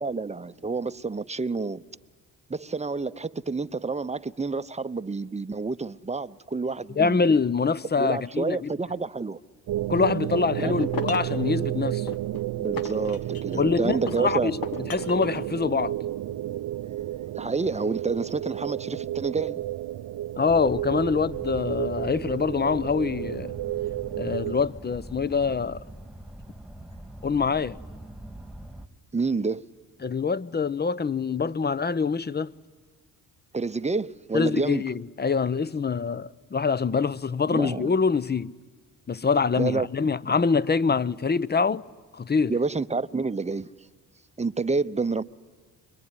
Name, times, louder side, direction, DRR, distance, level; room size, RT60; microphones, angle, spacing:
voice 1, 0.0-1.8 2.5-7.4 8.0-9.4 10.6-10.9 12.6-14.5 17.3-19.6 29.1-29.6 33.5-34.8 37.5-37.9 39.6-39.9 42.5-43.7 44.4-45.2, right 4 dB, 15° right, 0.8 m, -29 dB
voice 2, 7.0-8.7 9.9-12.1 13.5-14.6 14.9-15.9 20.4-23.5 24.2-25.8 27.2-27.8 30.0-32.5 34.3-38.5 39.1-41.8 42.1-42.5, left 5 dB, 25° left, 0.7 m, -25 dB
sound 1, 9.7-24.6, right 13 dB, 70° right, 0.7 m, -31 dB
sound 2, 10.4-11.4 12.1-13.6 14.1-15.4, left 4 dB, 65° left, 1.9 m, -36 dB
sound 3, 20.5-28.9, right 1 dB, ahead, 1.9 m, -43 dB
25.5 x 22.0 x 9.8 m
supercardioid pair, 55°, 38 cm